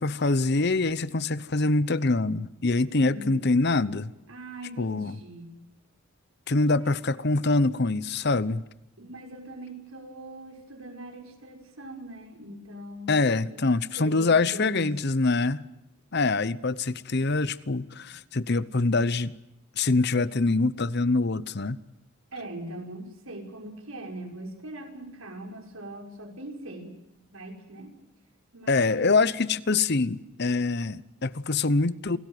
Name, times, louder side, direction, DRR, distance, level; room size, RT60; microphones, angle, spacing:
voice 1, 0.0-4.1 4.8-5.1 6.5-8.6 13.1-15.7 16.1-19.3 19.8-21.8 28.7-32.2, left 3 dB, 50° left, 0.9 m, -24 dB
voice 2, 2.8-3.4 4.3-5.6 6.8-6.9 9.0-14.9 22.3-26.9 27.3-27.9 28.5-29.2, right 1 dB, 70° right, 6.2 m, -41 dB
28.5 x 18.5 x 9.4 m
head